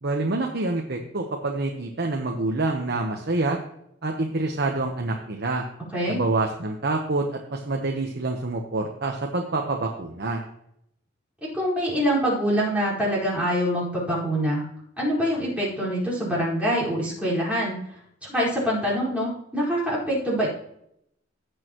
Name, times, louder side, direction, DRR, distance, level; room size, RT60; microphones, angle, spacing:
voice 1, 0.0-3.6 4.0-5.6 6.1-10.4, right 2 dB, 55° right, 2 dB, 1.1 m, -27 dB
voice 2, 11.4-14.6 15.0-17.8 18.3-20.5, equal, 5° right, -8 dB, 4.8 m, -25 dB
17.5 x 6.5 x 3.0 m, 0.75 s
head